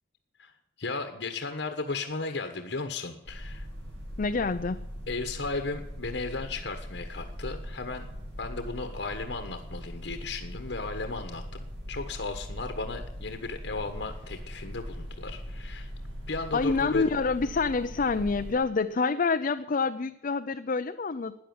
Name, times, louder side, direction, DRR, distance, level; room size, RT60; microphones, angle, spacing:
voice 1, 0.8-3.7 5.1-8.1 8.4-15.9 16.3-17.1, left 3 dB, 70° left, 6 dB, 1.3 m, -35 dB
sound 1, 3.2-18.5, equal, 75° right, 6.9 m, -40 dB
voice 2, 4.2-4.9 16.5-21.4, left 4 dB, 45° left, 8 dB, 0.5 m, -27 dB
12.5 x 9.9 x 9.5 m, 0.87 s
head